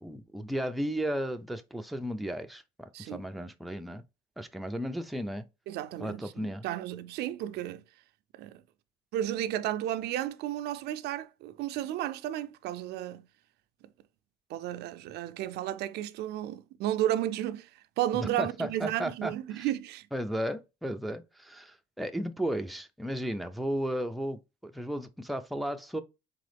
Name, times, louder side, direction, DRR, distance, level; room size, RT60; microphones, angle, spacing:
voice 1, 0.0-4.0 4.4-5.5 6.0-6.6 18.2-19.7 20.1-26.0, equal, ahead, 0.4 m, -34 dB
voice 2, 5.7-7.8 8.3-8.6 9.1-13.2 14.5-17.7 18.0-20.1, right 12 dB, 75° right, 0.4 m, -33 dB
3.9 x 3.7 x 3.3 m
cardioid pair, 110°, 17 cm